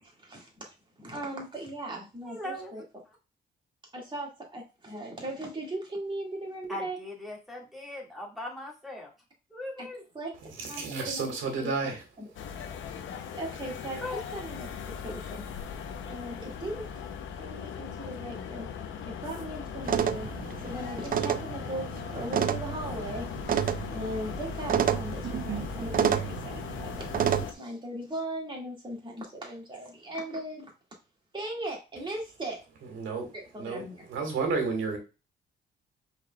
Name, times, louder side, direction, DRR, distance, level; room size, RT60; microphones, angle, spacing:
voice 1, 0.0-2.8 3.9-7.0 9.8-9.9 10.1-10.3 10.7-11.7 12.2-12.3 13.3-14.0 14.3-14.7 15.0-15.4 16.1-16.9 17.4-18.7 19.1-20.3 20.6-23.3 23.9-30.7 31.3-32.6 33.3-34.0, right 1 dB, 25° right, 2.1 m, -38 dB
voice 2, 2.2-2.7 6.7-9.1 9.5-10.0 14.0-14.2, left 1 dB, ahead, 2.1 m, -39 dB
voice 3, 10.6-12.0 32.9-33.3 33.6-35.0, right 4 dB, 80° right, 1.7 m, -31 dB
sound 1, 12.3-27.5, left 7 dB, 80° left, 0.8 m, -39 dB
sound 2, 19.8-27.4, right 9 dB, 45° right, 0.5 m, -30 dB
4.8 x 4.0 x 2.3 m
cardioid pair, 90°, 20 cm